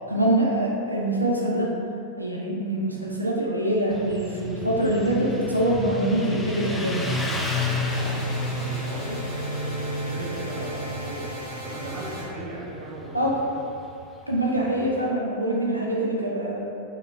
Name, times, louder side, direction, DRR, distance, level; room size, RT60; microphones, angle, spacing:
voice 1, 0.1-1.8 2.2-7.1 13.1-13.4 14.3-16.6, right 1 dB, 85° right, -3 dB, 0.4 m, -24 dB
Motorcycle, 3.9-15.0, left 2 dB, 10° left, 0.3 m, -32 dB
sound 1, 5.9-12.4, right 1 dB, 90° left, 0.5 m, -35 dB
sound 2, 7.9-12.3, equal, 55° left, 1.1 m, -39 dB
voice 2, 7.9-13.6, right 2 dB, 45° right, -5 dB, 0.7 m, -37 dB
3.0 x 2.8 x 2.3 m, 2.6 s
figure-of-eight pair, 90°, 0 cm